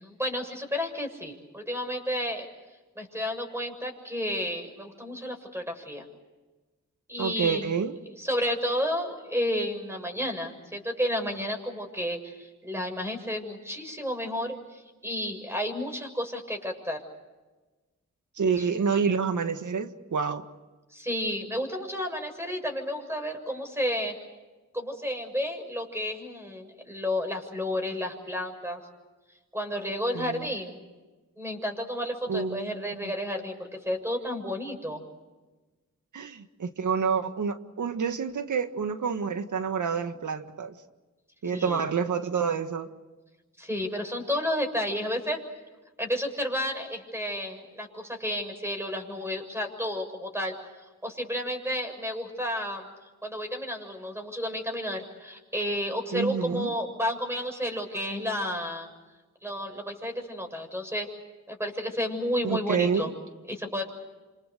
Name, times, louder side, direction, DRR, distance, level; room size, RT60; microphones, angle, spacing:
voice 1, 0.0-2.5 3.0-6.0 7.1-7.7 8.2-17.0 18.6-18.7 20.9-24.2 24.7-28.8 29.5-30.8 31.4-35.0 41.5-41.9 43.6-45.4 46.0-50.5 51.0-52.8 53.2-58.9 59.4-61.1 61.5-63.1 63.5-63.9, equal, 10° right, 4 dB, 7.2 m, -31 dB
voice 2, 7.2-8.0 18.4-20.5 30.1-30.5 32.3-33.1 36.1-40.7 41.4-42.9 56.1-56.7 62.4-63.1, right 6 dB, 80° right, 9 dB, 1.7 m, -28 dB
28.0 x 27.0 x 6.7 m, 1.2 s
cardioid pair, 60°, 30 cm